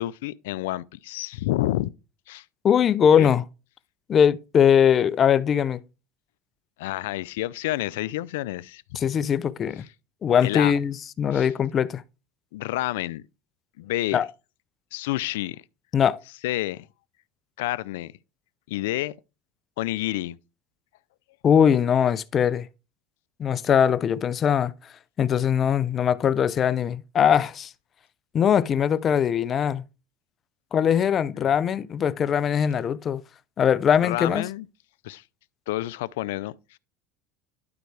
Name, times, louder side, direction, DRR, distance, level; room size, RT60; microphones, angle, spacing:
voice 1, 0.0-1.9 2.3-2.4 3.2-3.3 6.8-8.8 10.4-10.8 11.3-11.5 12.5-13.2 13.8-14.2 14.9-15.6 16.4-16.9 17.6-18.1 18.7-19.1 19.8-20.4 31.3-31.5 34.0-34.7 35.0-35.2 35.7-36.8, left 16 dB, 85° left, 0.4 m, -29 dB
voice 2, 2.6-3.4 4.1-5.8 9.0-9.8 10.2-12.0 14.1-14.2 15.9-16.2 21.4-22.7 23.4-24.7 25.2-27.7 28.3-29.8 30.7-33.2 33.6-34.5, left 8 dB, 35° left, 0.5 m, -21 dB
12.0 x 4.6 x 3.3 m
supercardioid pair, 115°, 0 cm